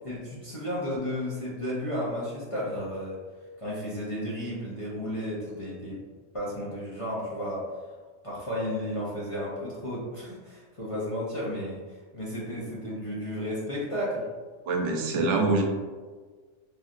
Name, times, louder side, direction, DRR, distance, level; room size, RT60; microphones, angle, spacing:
voice 1, 0.0-3.2 3.6-6.0 6.3-7.7 8.2-14.3, equal, 40° left, -7 dB, 0.5 m, -33 dB
voice 2, 14.7-15.6, right 3 dB, 80° right, 1 dB, 0.9 m, -24 dB
3.1 x 2.7 x 2.4 m, 1.4 s
omnidirectional pair, 1.2 m